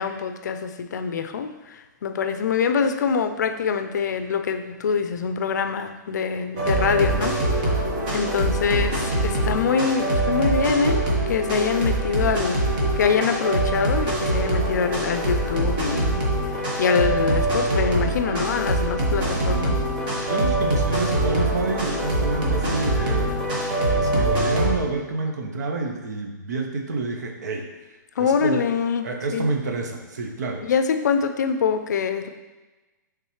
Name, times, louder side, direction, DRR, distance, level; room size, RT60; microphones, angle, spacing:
voice 1, 0.0-7.4 8.1-12.6 13.0-16.2 16.8-19.8 28.2-29.0 29.3-29.5 30.6-32.3, left 6 dB, 65° left, 8 dB, 0.5 m, -24 dB
sound 1, 6.6-24.8, right 1 dB, 25° right, 1.0 m, -23 dB
voice 2, 20.2-23.4 23.7-27.7 28.2-28.6 29.0-30.7, right 3 dB, 60° right, 3 dB, 0.9 m, -28 dB
8.7 x 3.6 x 3.1 m, 1.2 s
hypercardioid pair, 180°, 10 cm